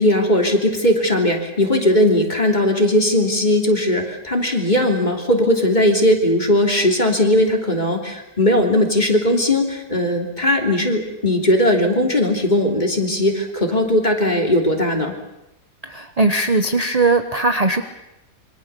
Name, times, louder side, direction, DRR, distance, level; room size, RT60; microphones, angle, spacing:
voice 1, 0.0-15.1, left 1 dB, 25° left, 3 dB, 3.1 m, -18 dB
voice 2, 15.8-17.8, right 3 dB, 25° right, 8 dB, 1.0 m, -19 dB
27.0 x 24.0 x 6.9 m, 0.91 s
omnidirectional pair, 1.7 m